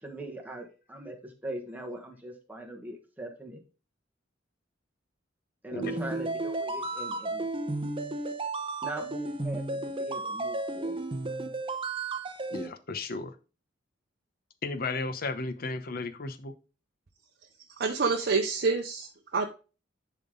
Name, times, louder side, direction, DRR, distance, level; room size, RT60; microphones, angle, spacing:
voice 1, 0.0-3.6 5.6-7.5 8.8-11.0, right 1 dB, 10° right, 1 dB, 1.4 m, -41 dB
sound 1, 5.8-12.7, right 2 dB, 30° right, 0.8 m, -33 dB
voice 2, 12.5-13.4 14.6-16.5, left 3 dB, 50° left, 10 dB, 0.8 m, -34 dB
voice 3, 17.8-19.5, right 4 dB, 60° right, 4 dB, 0.7 m, -27 dB
10.5 x 3.7 x 3.8 m, 0.34 s
head